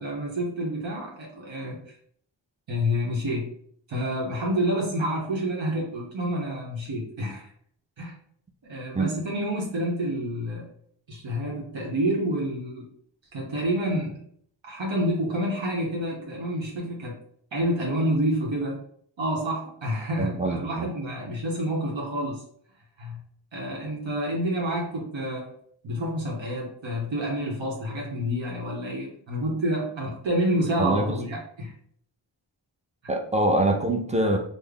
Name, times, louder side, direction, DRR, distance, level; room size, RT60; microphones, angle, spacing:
voice 1, 0.0-1.8 2.7-3.5 3.9-7.5 8.0-8.2 8.6-10.7 11.1-12.9 13.3-14.2 14.6-17.1 17.5-18.8 19.2-22.4 23.0-23.2 23.5-25.6 25.8-31.7 33.0-33.1, equal, 75° right, -2 dB, 0.9 m, -28 dB
voice 2, 20.2-20.9 30.8-31.2 33.1-34.4, right 1 dB, 15° right, 3 dB, 0.6 m, -24 dB
3.3 x 2.0 x 3.8 m, 0.63 s
wide cardioid pair, 55°, 46 cm